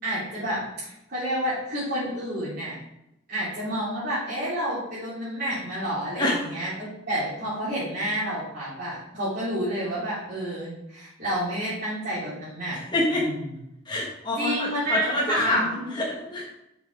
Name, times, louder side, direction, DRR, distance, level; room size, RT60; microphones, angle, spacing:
voice 1, 0.0-2.7 3.3-13.4 14.4-15.9, equal, 50° right, -12 dB, 3.1 m, -30 dB
voice 2, 12.9-13.2 13.8-15.6 15.9-16.4, left 1 dB, 25° left, -3 dB, 1.2 m, -26 dB
6.3 x 5.9 x 4.6 m, 0.84 s
head